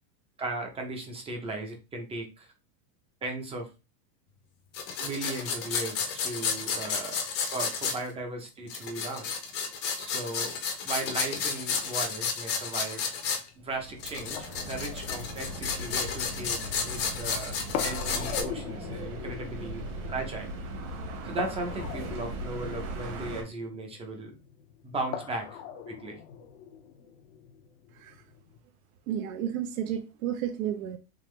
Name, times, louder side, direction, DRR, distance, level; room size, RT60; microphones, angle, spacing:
voice 1, 0.4-2.5 3.2-3.7 5.0-7.2 7.5-9.3 10.0-10.6 10.8-13.0 13.6-19.8 20.1-20.5 21.2-24.3 24.8-25.6 25.9-26.2, right 2 dB, 15° right, 0.6 m, -37 dB
sound 1, 4.7-8.0 8.7-13.4 14.0-18.4, left 6 dB, 30° left, 0.7 m, -32 dB
sound 2, 11.4-28.6, left 8 dB, 65° left, 0.8 m, -43 dB
sound 3, 13.6-23.4, right 1 dB, 45° right, 1.4 m, -39 dB
voice 2, 29.1-31.0, right 10 dB, 65° right, 0.7 m, -32 dB
3.7 x 2.9 x 3.2 m
supercardioid pair, 150°, 46 cm